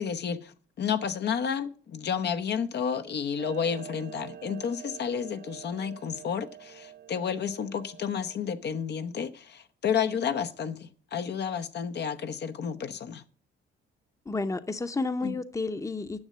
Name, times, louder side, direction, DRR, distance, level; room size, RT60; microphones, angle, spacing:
voice 1, 0.0-13.2 15.2-15.3, left 7 dB, 60° left, 0.9 m, -31 dB
Clock, 3.4-8.4, right 10 dB, 55° right, 0.5 m, -46 dB
voice 2, 14.3-16.2, left 3 dB, 15° left, 0.8 m, -31 dB
9.7 x 6.5 x 7.6 m
cardioid pair, 90°, 20 cm